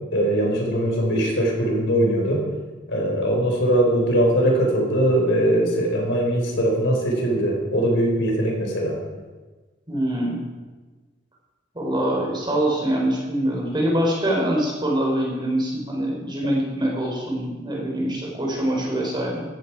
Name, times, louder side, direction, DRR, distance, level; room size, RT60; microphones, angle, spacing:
voice 1, 0.1-2.4 2.9-9.0, right 1 dB, 65° left, 0 dB, 4.5 m, -21 dB
voice 2, 9.9-10.4 11.7-19.4, right 1 dB, 25° right, -2 dB, 4.0 m, -24 dB
15.0 x 14.0 x 4.8 m, 1.3 s
head